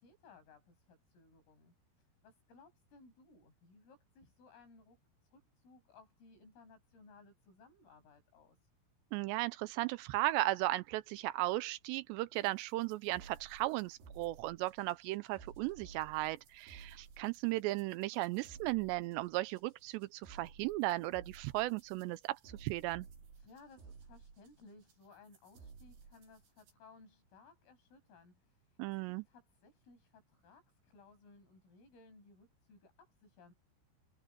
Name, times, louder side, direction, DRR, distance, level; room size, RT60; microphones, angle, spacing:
voice 1, 0.0-5.0 5.3-8.7 23.3-33.5, left 3 dB, 80° left, 10.5 m, -61 dB
voice 2, 9.1-23.1 28.8-29.2, right 18 dB, 90° right, 2.5 m, -36 dB
sound 1, 12.4-26.7, right 5 dB, 55° right, 6.1 m, -57 dB
omnidirectional pair, 5.8 m